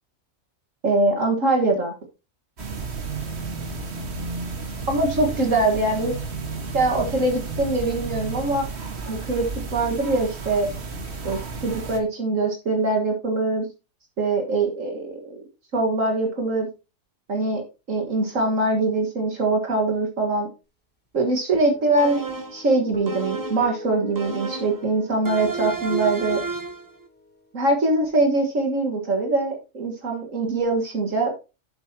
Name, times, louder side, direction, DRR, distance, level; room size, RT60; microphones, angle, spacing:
voice 1, 0.8-1.9 4.9-6.2 6.7-8.7 9.1-9.5 9.7-10.7 11.2-13.7 14.2-15.4 15.7-16.7 17.3-20.5 21.1-22.2 22.5-26.4 27.5-31.3, right 2 dB, 70° right, 1 dB, 2.0 m, -23 dB
sound 1, 2.6-12.0, right 4 dB, 50° right, 1.8 m, -32 dB
sound 2, 21.5-28.1, left 2 dB, 5° left, 2.9 m, -41 dB
sound 3, 22.0-22.6 23.1-23.7 24.2-24.8 25.3-26.9, right 4 dB, 20° right, 0.5 m, -31 dB
10.5 x 8.0 x 2.8 m, 0.29 s
omnidirectional pair, 1.4 m